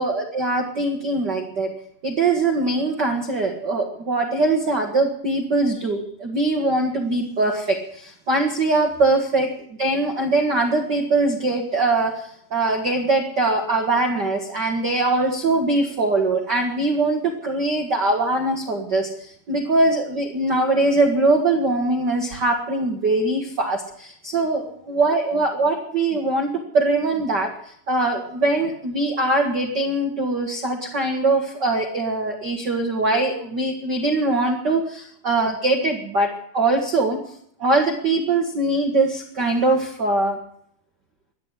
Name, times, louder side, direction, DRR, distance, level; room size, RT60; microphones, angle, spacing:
voice 1, 0.0-1.7 2.0-9.5 9.8-37.2 37.6-40.4, right 2 dB, 45° right, 1 dB, 1.6 m, -22 dB
13.5 x 9.9 x 9.7 m, 0.66 s
omnidirectional pair, 4.0 m